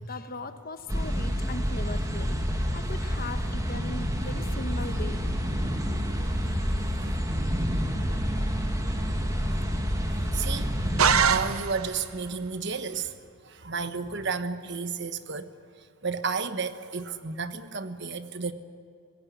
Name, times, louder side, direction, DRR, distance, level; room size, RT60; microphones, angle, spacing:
voice 1, 0.0-2.4 2.7-5.2, left 2 dB, 40° left, 9 dB, 1.3 m, -39 dB
sound 1, 0.9-11.4, equal, 15° right, 2.2 m, -28 dB
voice 2, 10.3-10.7 11.3-13.1 13.4-15.5 16.0-18.5, right 5 dB, 50° right, 11 dB, 1.3 m, -32 dB
sound 2, 11.0-12.1, right 7 dB, 75° right, 1.1 m, -23 dB
25.5 x 17.0 x 9.7 m, 2.6 s
head